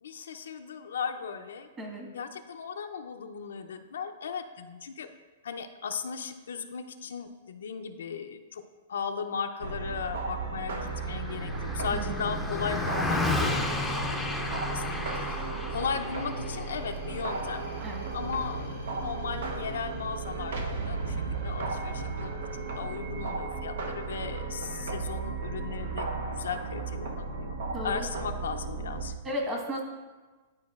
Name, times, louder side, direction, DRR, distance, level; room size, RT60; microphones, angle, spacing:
voice 1, 0.0-1.7 2.1-5.1 5.4-8.6 8.9-13.6 14.5-17.6 18.1-21.2 21.4-22.5 22.8-27.5 27.8-29.1, left 6 dB, 90° left, 7 dB, 0.5 m, -36 dB
voice 2, 1.8-2.1 11.9-12.2 17.8-18.0 27.7-28.1 29.2-29.8, equal, 20° right, -1 dB, 1.3 m, -34 dB
sound 1, 9.6-29.1, right 4 dB, 80° right, 0.7 m, -35 dB
Car passing by, 10.8-20.4, left 2 dB, 5° left, 0.5 m, -34 dB
10.5 x 4.6 x 2.4 m, 1.3 s
hypercardioid pair, 155°, 0 cm